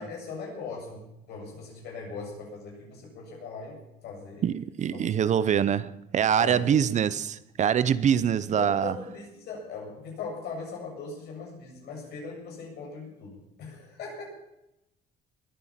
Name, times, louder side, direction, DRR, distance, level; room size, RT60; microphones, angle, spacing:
voice 1, 0.0-4.5 4.9-5.7 6.4-6.9 8.5-14.3, left 4 dB, 75° left, 7.8 m, -40 dB
voice 2, 4.4-8.9, right 8 dB, 45° right, 0.7 m, -24 dB
21.0 x 9.3 x 5.8 m
cardioid pair, 110°, 17 cm